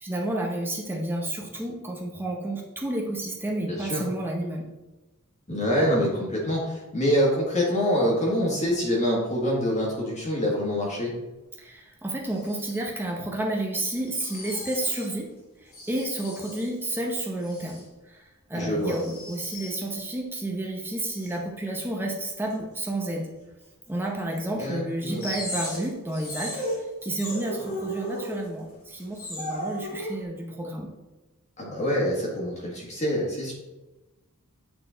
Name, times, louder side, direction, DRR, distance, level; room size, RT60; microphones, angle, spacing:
voice 1, 0.0-4.7 11.6-15.3 15.6-23.3 23.9-30.9, right 1 dB, 10° right, -1 dB, 0.8 m, -31 dB
voice 2, 3.6-4.0 5.5-11.1 18.5-18.9 24.5-25.4 31.6-33.5, equal, 30° left, -4 dB, 1.5 m, -25 dB
sound 1, 12.3-12.8 14.1-15.1 15.7-16.7 17.4-17.8 18.8-19.8 21.0-21.4 22.5-22.6 23.9-24.0 24.4-24.5 25.2-28.7 29.0-30.2, equal, 70° left, 2.2 m, -36 dB
8.8 x 4.3 x 3.9 m, 1.1 s
head